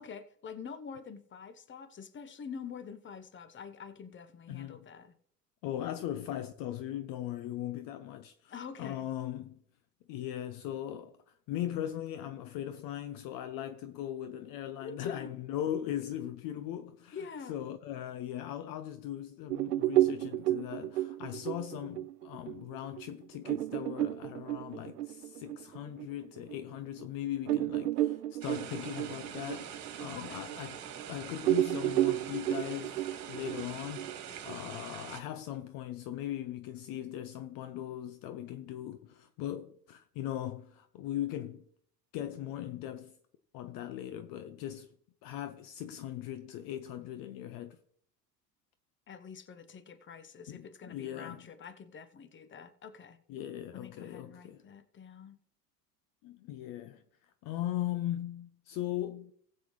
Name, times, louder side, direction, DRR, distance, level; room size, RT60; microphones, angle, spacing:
voice 1, 0.0-5.1 8.5-9.1 14.8-15.3 17.1-17.6 30.2-30.4 49.1-53.2 53.7-55.4, left 6 dB, 25° left, 1.2 m, -46 dB
voice 2, 4.5-4.8 5.6-9.6 10.1-11.2 11.5-17.2 17.5-30.8 31.1-41.6 42.1-43.2 43.5-44.9 45.2-47.8 50.5-51.5 53.3-54.6 56.2-57.0 57.4-59.3, left 12 dB, 45° left, 0.8 m, -39 dB
sound 1, 19.5-26.6 27.0-27.1 27.5-31.1 31.4-34.5, right 15 dB, 75° right, 0.6 m, -32 dB
sound 2, 28.4-35.2, right 8 dB, 35° right, 2.2 m, -45 dB
19.0 x 7.7 x 3.2 m
figure-of-eight pair, 75°, 49 cm